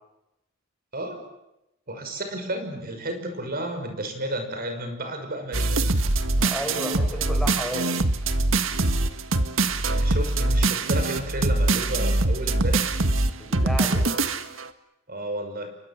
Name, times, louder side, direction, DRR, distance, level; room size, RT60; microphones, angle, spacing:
voice 1, 1.9-6.0 9.9-12.9 15.1-15.7, right 1 dB, 50° right, 6 dB, 6.0 m, -32 dB
sound 1, 5.5-14.7, right 2 dB, 80° right, 1.8 m, -23 dB
voice 2, 6.4-7.9 13.4-14.1, equal, ahead, 3 dB, 5.5 m, -32 dB
30.0 x 23.5 x 7.4 m, 0.86 s
head